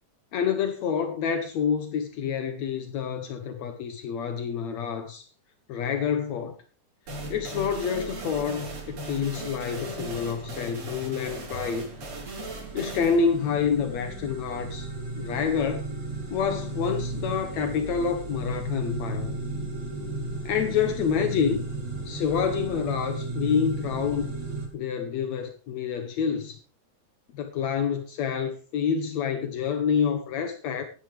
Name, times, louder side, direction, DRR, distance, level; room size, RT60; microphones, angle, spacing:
voice 1, 0.3-5.2 5.7-6.6 7.3-11.9 12.7-14.9 15.2-15.8 16.3-19.3 20.5-21.7 22.1-24.3 24.7-26.6 27.4-30.8, left 7 dB, 70° left, 2.3 m, -28 dB
sound 1, 7.1-14.5, right 2 dB, 65° right, 4.8 m, -38 dB
sound 2, 11.5-24.7, right 3 dB, 35° right, 4.3 m, -35 dB
15.5 x 11.0 x 3.3 m
omnidirectional pair, 3.3 m